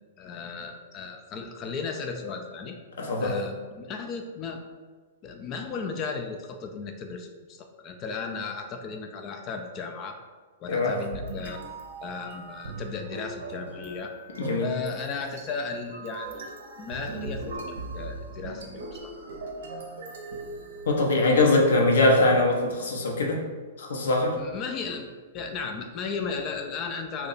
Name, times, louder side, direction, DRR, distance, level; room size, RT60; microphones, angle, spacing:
voice 1, 0.2-2.8 3.2-4.6 5.2-10.2 10.6-11.6 12.0-14.2 14.6-16.5 16.8-19.1 24.4-27.3, left 5 dB, 35° left, 4 dB, 0.3 m, -35 dB
voice 2, 3.0-3.4 10.7-11.0 14.4-14.7 20.9-23.4 23.8-24.4, left 2 dB, 70° left, 0 dB, 0.6 m, -22 dB
sound 1, 11.1-21.4, right 2 dB, 70° right, 0.6 m, -39 dB
2.7 x 2.2 x 3.9 m, 1.4 s
hypercardioid pair, 110°, 0 cm